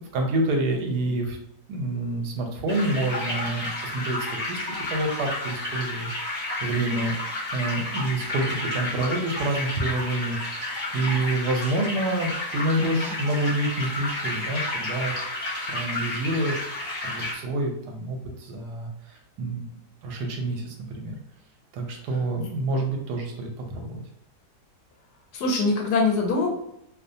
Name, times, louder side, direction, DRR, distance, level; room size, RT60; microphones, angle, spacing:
voice 1, 0.0-1.4 1.7-7.2 7.5-10.7 10.9-15.1 15.7-16.6 17.0-19.6 20.0-21.2 21.7-24.0, right 2 dB, 85° right, 2 dB, 1.2 m, -28 dB
Mountain Stream, 2.7-17.4, left 1 dB, 25° left, 0.8 m, -31 dB
voice 2, 12.8-13.1 25.3-26.5, left 3 dB, 80° left, 1 dB, 1.2 m, -23 dB
2.9 x 2.1 x 2.6 m, 0.76 s
omnidirectional pair, 1.7 m